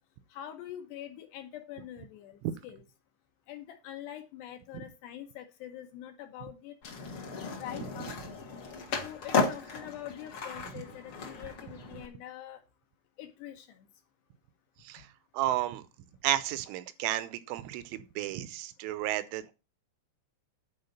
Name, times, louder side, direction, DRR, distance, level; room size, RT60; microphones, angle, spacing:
voice 1, 0.3-2.8 3.5-6.8 7.6-8.4 9.0-12.6 13.2-13.9, left 11 dB, 70° left, 2.8 m, -45 dB
Skateboard, 6.8-12.1, left 4 dB, 55° left, 1.4 m, -34 dB
voice 2, 15.3-15.8 16.2-19.5, right 14 dB, 80° right, 3.1 m, -32 dB
10.5 x 4.7 x 7.1 m
omnidirectional pair, 5.7 m